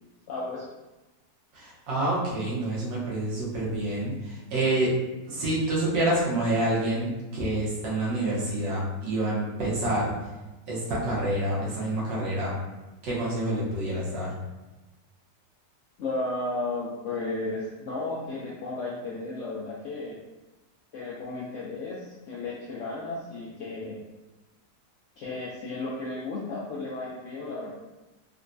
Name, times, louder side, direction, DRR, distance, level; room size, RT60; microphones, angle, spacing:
voice 1, 0.3-0.6 16.0-20.2 20.9-24.0 25.2-27.7, left 2 dB, 85° left, -6 dB, 0.6 m, -34 dB
voice 2, 1.5-4.9 5.3-10.1 10.7-12.5 13.0-14.3, right 1 dB, 90° right, -6 dB, 1.6 m, -27 dB
3.8 x 2.2 x 2.6 m, 1.1 s
omnidirectional pair, 1.9 m